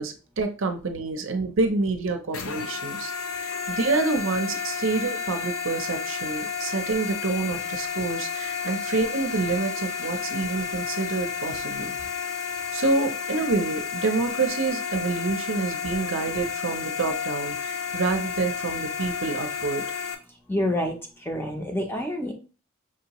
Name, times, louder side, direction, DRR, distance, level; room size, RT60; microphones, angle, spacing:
voice 1, 0.0-3.1 3.4-12.0 12.7-19.8, right 3 dB, 60° right, 6 dB, 0.6 m, -27 dB
sound 1, 2.3-20.1, left 6 dB, 65° left, 0.6 m, -31 dB
voice 2, 20.5-22.3, left 1 dB, 10° left, 2 dB, 0.6 m, -28 dB
5.9 x 2.8 x 2.9 m, 0.34 s
head